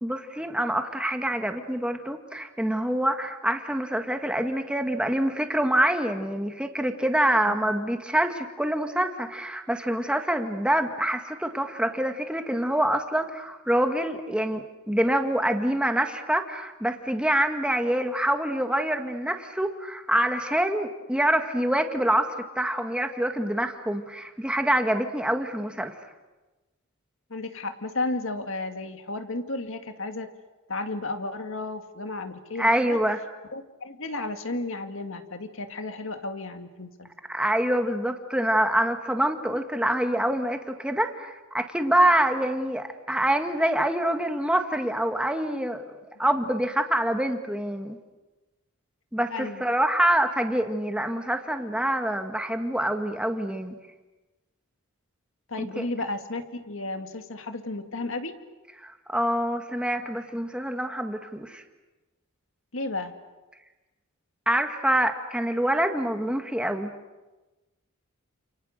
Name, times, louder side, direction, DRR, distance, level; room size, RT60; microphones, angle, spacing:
voice 1, 0.0-25.9 32.6-33.2 37.3-45.8 46.2-48.0 49.1-53.8 55.6-55.8 58.8-61.6 64.5-66.9, right 1 dB, 5° right, 5 dB, 1.8 m, -26 dB
voice 2, 7.5-7.8 27.3-30.3 30.7-33.0 33.5-37.1 49.3-49.6 55.5-58.3 62.7-63.1, left 2 dB, 65° left, 6 dB, 2.2 m, -33 dB
29.5 x 28.5 x 6.6 m, 1.1 s
head